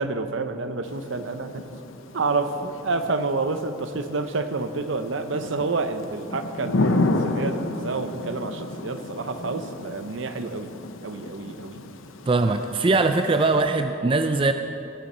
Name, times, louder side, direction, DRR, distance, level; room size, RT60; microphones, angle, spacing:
voice 1, 0.0-1.6 2.1-10.7 11.0-11.8, right 3 dB, 70° right, 9 dB, 0.7 m, -29 dB
Thunder / Rain, 0.8-13.6, left 2 dB, 80° left, 0.7 m, -32 dB
voice 2, 12.3-14.5, right 3 dB, 25° right, 7 dB, 0.4 m, -21 dB
19.0 x 7.3 x 5.4 m, 2.6 s
head